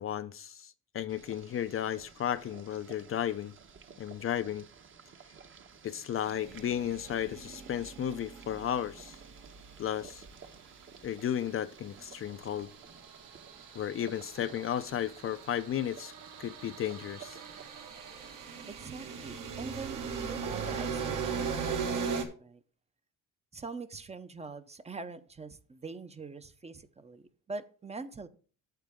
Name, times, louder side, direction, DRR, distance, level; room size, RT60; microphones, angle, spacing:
voice 1, 0.0-3.5 4.0-4.7 5.8-9.2 9.8-10.2 11.0-12.7 13.7-16.1 16.4-17.4, left 10 dB, 40° left, 0.5 m, -34 dB
Boiling, 1.1-17.7, right 6 dB, 40° right, 1.0 m, -54 dB
sound 1, 6.2-10.6 12.1-22.2, right 6 dB, 70° right, 1.9 m, -39 dB
voice 2, 18.7-21.8 22.1-22.6 23.5-28.3, right 4 dB, 20° right, 0.6 m, -44 dB
9.1 x 7.4 x 3.6 m
cardioid pair, 125°, 33 cm